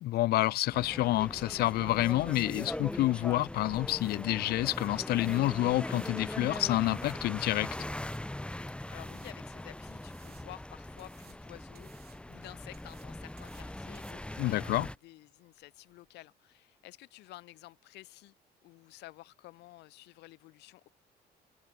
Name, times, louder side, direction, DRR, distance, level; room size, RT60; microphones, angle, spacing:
voice 1, 0.0-7.7 14.4-14.9, left 16 dB, 70° left, 0.5 m, -28 dB
sound 1, 0.7-15.0, left 1 dB, 5° left, 2.4 m, -41 dB
sound 2, 3.7-16.2, right 13 dB, 70° right, 5.8 m, -65 dB
voice 2, 8.6-18.4 18.6-20.9, left 18 dB, 85° left, 5.5 m, -52 dB
cardioid pair, 110°, 17 cm